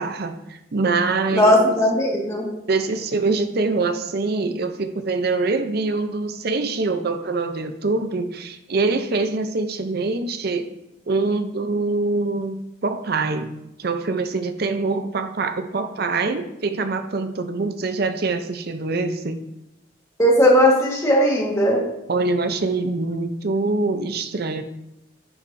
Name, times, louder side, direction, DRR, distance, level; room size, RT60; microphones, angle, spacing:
voice 1, 0.0-1.7 2.7-10.7 11.1-13.5 13.8-19.4 22.1-24.6, right 3 dB, 55° right, 8 dB, 0.6 m, -24 dB
voice 2, 1.3-2.5 20.2-21.8, equal, 15° left, -3 dB, 1.5 m, -17 dB
10.0 x 5.8 x 2.6 m, 0.88 s
head